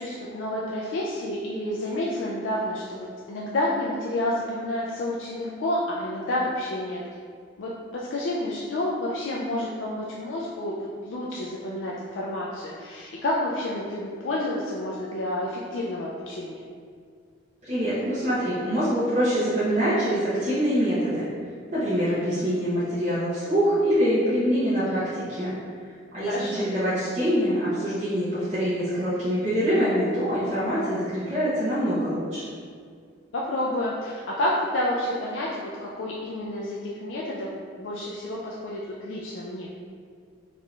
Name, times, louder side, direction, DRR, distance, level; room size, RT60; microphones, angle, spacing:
voice 1, 0.0-7.0 7.6-10.7 11.1-16.7 26.3-26.6 33.3-37.5 37.8-39.7, left 1 dB, 70° left, -5 dB, 0.4 m, -29 dB
voice 2, 17.6-21.2 21.7-25.5 26.1-32.4, equal, 40° right, -13 dB, 0.8 m, -24 dB
3.5 x 2.4 x 3.2 m, 2.1 s
head